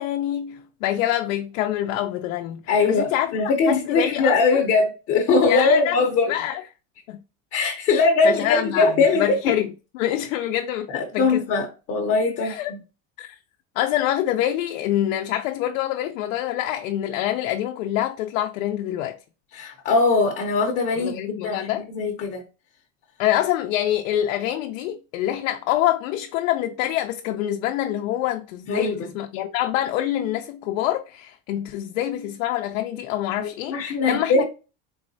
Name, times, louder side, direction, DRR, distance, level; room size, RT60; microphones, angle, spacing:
voice 1, 0.0-2.6 2.9-3.3 3.7-4.6 5.4-6.6 7.1-7.2 7.9-9.7 9.9-11.4 12.4-12.7 13.2-13.4 13.8-19.2 21.0-21.9 23.2-34.4, left 12 dB, 90° left, 0.6 m, -26 dB
voice 2, 2.7-6.3 7.5-9.5 10.9-12.8 19.5-22.4 28.7-29.1 33.4-34.4, left 4 dB, 35° left, 0.7 m, -21 dB
4.0 x 3.0 x 2.6 m
cardioid pair, 155°, 38 cm